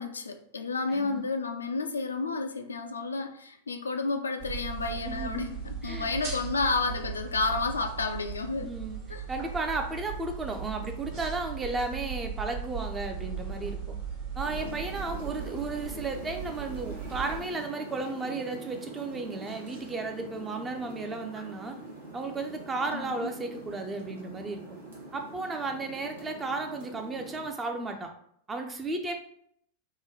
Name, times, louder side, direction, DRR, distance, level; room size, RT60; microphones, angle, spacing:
voice 1, 0.0-8.7 9.1-9.3 22.9-23.3, left 3 dB, 75° left, 6 dB, 0.3 m, -31 dB
voice 2, 0.9-1.2 5.0-6.1 8.6-9.0 9.3-14.0 14.4-21.8 22.1-24.6 25.1-28.1 28.5-29.1, right 3 dB, 15° right, 4 dB, 0.5 m, -34 dB
sound 1, 4.4-17.4, right 6 dB, 45° right, 1.1 m, -38 dB
sound 2, 14.4-27.5, right 2 dB, 70° right, 1.1 m, -44 dB
3.1 x 2.2 x 3.5 m, 0.68 s
figure-of-eight pair, 90°, 0 cm